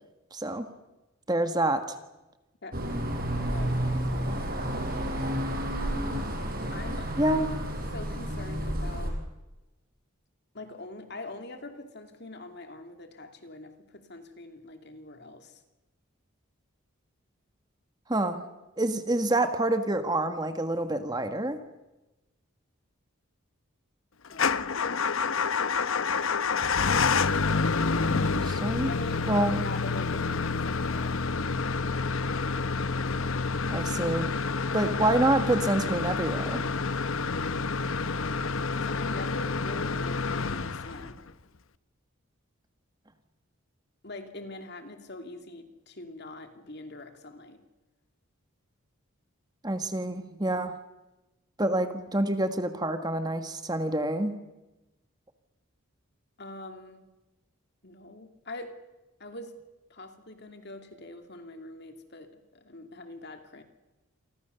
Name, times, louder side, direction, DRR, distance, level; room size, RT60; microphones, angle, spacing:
voice 1, 0.3-0.7 1.3-2.0 7.2-7.5 18.1-18.4 18.8-21.6 28.1-28.9 29.3-29.6 33.7-34.3 34.7-36.6 49.6-50.7 51.6-54.3, right 1 dB, 20° right, 8 dB, 1.5 m, -27 dB
sound 1, 2.7-9.1, right 1 dB, 40° right, 5.4 m, -31 dB
voice 2, 3.3-4.6 6.7-7.4 7.9-9.2 10.5-15.6 24.3-24.6 28.9-31.5 38.7-41.2 44.0-47.6 56.4-57.1 57.8-58.8 59.2-59.5 59.9-63.6, left 2 dB, 50° left, 6 dB, 2.7 m, -43 dB
Motor vehicle (road) / Engine starting / Idling, 24.3-41.3, left 4 dB, 70° left, 0.9 m, -28 dB
28.5 x 24.5 x 7.0 m, 1.0 s
head